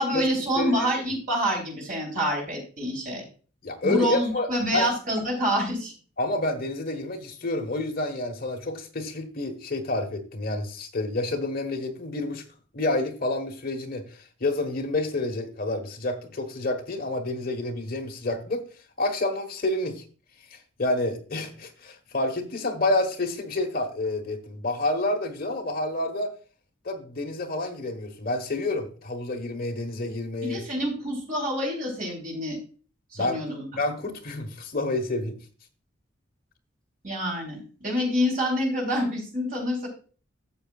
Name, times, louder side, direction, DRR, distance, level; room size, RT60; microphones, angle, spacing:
voice 1, 0.0-3.2 3.8-5.9 30.4-32.6 33.1-33.7 37.0-39.9, equal, 45° right, 3.7 m, -27 dB
voice 2, 0.6-0.9 3.6-4.9 6.2-12.4 12.7-14.1 14.4-18.6 19.0-20.0 20.5-26.3 26.8-30.6 33.2-33.4 33.7-35.4, left 2 dB, 50° left, 1.3 m, -29 dB
13.0 x 6.9 x 2.4 m
head